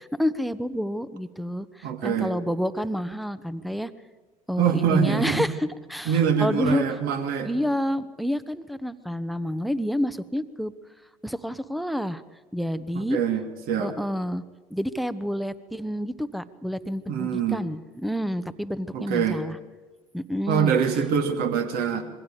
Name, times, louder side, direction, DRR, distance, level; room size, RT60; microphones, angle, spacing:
voice 1, 0.0-3.9 4.5-7.0 7.4-10.7 11.2-12.2 12.5-13.2 13.8-14.4 14.7-19.6 20.1-20.7, equal, ahead, 15 dB, 1.1 m, -29 dB
voice 2, 1.8-2.3 4.6-5.5 6.1-7.5 12.9-13.4 13.7-13.9 17.1-17.6 18.9-19.4 20.5-22.0, right 7 dB, 50° right, 6 dB, 2.7 m, -24 dB
26.5 x 22.5 x 5.1 m, 1.3 s
figure-of-eight pair, 65°, 19 cm